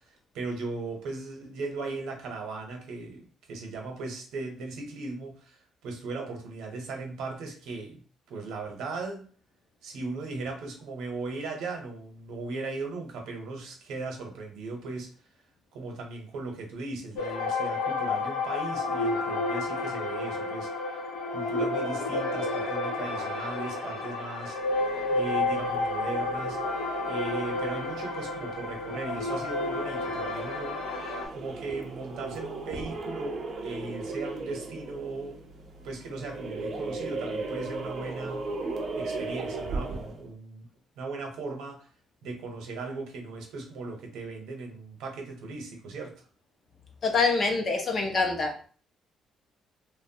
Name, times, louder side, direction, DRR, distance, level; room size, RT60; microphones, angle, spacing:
voice 1, 0.0-9.2 9.8-15.1 15.7-21.0 21.3-24.6 25.1-26.6 27.1-30.8 31.3-35.4 35.8-38.5 39.0-40.7 41.0-41.9 42.2-46.2, right 3 dB, 85° right, 2 dB, 0.8 m, -38 dB
sound 1, 17.2-31.3, left 3 dB, 85° left, 0.6 m, -31 dB
sound 2, 24.6-40.3, right 3 dB, 40° right, 0.4 m, -37 dB
voice 2, 47.0-48.5, left 4 dB, 35° left, 3 dB, 0.5 m, -25 dB
3.0 x 2.1 x 2.7 m, 0.41 s
cardioid pair, 170°, 0 cm